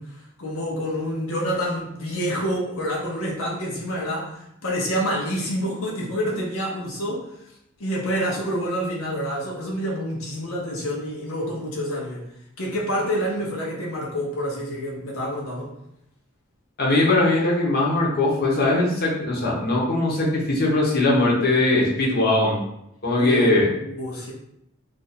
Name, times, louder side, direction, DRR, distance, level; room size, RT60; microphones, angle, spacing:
voice 1, 0.0-7.2 7.8-12.2 12.6-15.7 23.2-24.3, equal, 80° left, -3 dB, 0.7 m, -28 dB
voice 2, 16.8-22.6 23.0-23.7, left 2 dB, 50° left, -3 dB, 0.8 m, -20 dB
2.5 x 2.4 x 4.1 m, 0.79 s
head